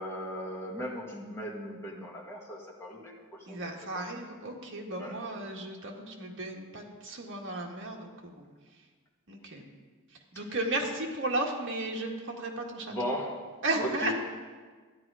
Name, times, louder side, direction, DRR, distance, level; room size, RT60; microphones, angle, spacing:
voice 1, 0.0-3.1 3.5-4.0 5.0-5.1 12.9-13.5 13.8-14.1, equal, 10° left, -3 dB, 1.9 m, -37 dB
voice 2, 3.5-8.4 9.3-9.6 10.3-12.9 13.6-14.1, right 2 dB, 55° right, 0 dB, 1.7 m, -34 dB
13.0 x 10.0 x 4.9 m, 1.5 s
head